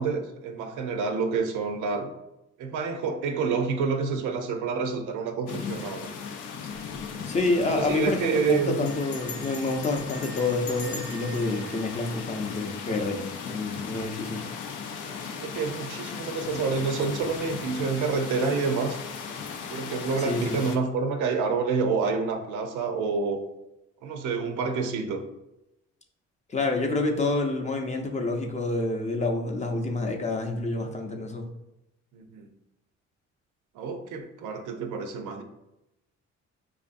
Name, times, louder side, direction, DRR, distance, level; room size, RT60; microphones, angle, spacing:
voice 1, 0.0-2.1 2.6-6.1 7.8-8.9 15.3-19.0 19.7-23.4 24.0-25.2 32.1-32.5 33.7-35.4, right 4 dB, 85° right, 6 dB, 0.5 m, -28 dB
sound 1, 5.5-20.8, left 6 dB, 90° left, 0.5 m, -37 dB
Bell, 7.1-7.2 7.4-7.5 7.7-8.1 8.9-12.9, left 2 dB, 70° left, 0.9 m, -43 dB
voice 2, 7.3-14.5 20.2-20.6 26.5-31.4, left 2 dB, 25° left, 2 dB, 0.5 m, -28 dB
4.6 x 2.5 x 2.5 m, 0.91 s
cardioid pair, 90°, 30 cm